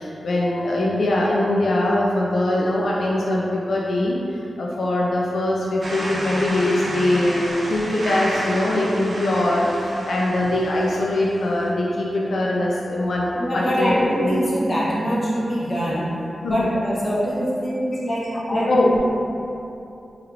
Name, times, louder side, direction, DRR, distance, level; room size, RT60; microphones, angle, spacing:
voice 1, 0.0-14.4 15.3-15.4 15.8-15.9 16.4-16.7 17.1-17.3 18.5-19.0, left 1 dB, 80° left, -4 dB, 0.4 m, -22 dB
sound 1, 5.8-11.6, right 1 dB, 55° right, 0.6 m, -31 dB
voice 2, 13.4-18.8, equal, 25° left, -7 dB, 0.9 m, -24 dB
4.2 x 2.6 x 2.6 m, 2.8 s
cardioid pair, 75°, 0 cm